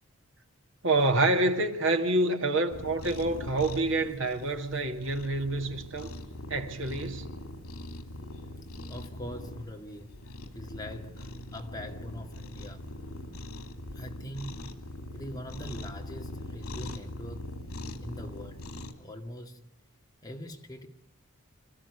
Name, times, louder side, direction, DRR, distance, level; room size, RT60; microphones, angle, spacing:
voice 1, 0.8-6.2 6.5-7.3, right 2 dB, 60° right, 2.3 m, -27 dB
Cat, 2.7-18.9, left 1 dB, 85° left, 2.8 m, -42 dB
voice 2, 8.9-10.1 10.5-12.8 13.9-14.6 15.1-17.5 18.0-18.6 19.0-19.6 20.2-20.9, equal, 15° left, 2.1 m, -42 dB
26.5 x 14.5 x 9.7 m
head